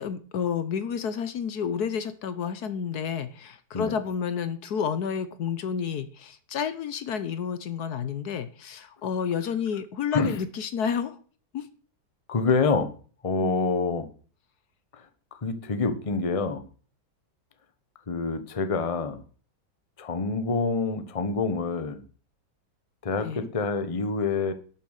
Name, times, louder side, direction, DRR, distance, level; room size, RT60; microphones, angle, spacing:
voice 1, 0.0-11.2 11.5-11.7 23.2-23.5, left 7 dB, 65° left, 13 dB, 1.3 m, -30 dB
voice 2, 12.3-12.9 13.2-14.1 14.9-15.1 15.3-16.6 18.1-19.2 20.0-22.0 23.0-24.5, left 4 dB, 25° left, 10 dB, 1.0 m, -26 dB
12.0 x 7.1 x 6.5 m, 0.42 s
omnidirectional pair, 1.9 m